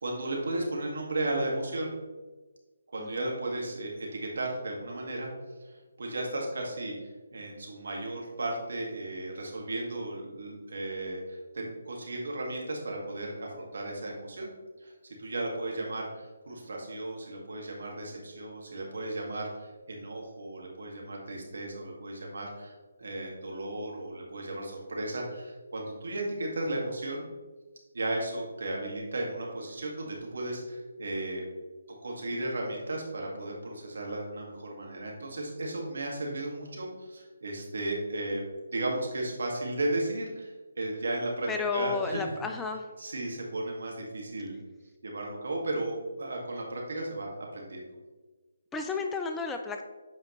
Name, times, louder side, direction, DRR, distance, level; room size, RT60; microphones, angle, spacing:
voice 1, 0.0-1.9 2.9-5.3 5.6-14.5 14.8-14.9 15.2-27.3 27.9-31.4 31.9-38.4 38.7-42.4 43.0-44.5 45.0-47.9, right 2 dB, 65° right, -1 dB, 2.0 m, -35 dB
voice 2, 41.5-42.9 48.7-49.9, left 4 dB, 10° left, 4 dB, 0.4 m, -32 dB
8.0 x 5.0 x 3.2 m, 1.3 s
figure-of-eight pair, 150°, 0 cm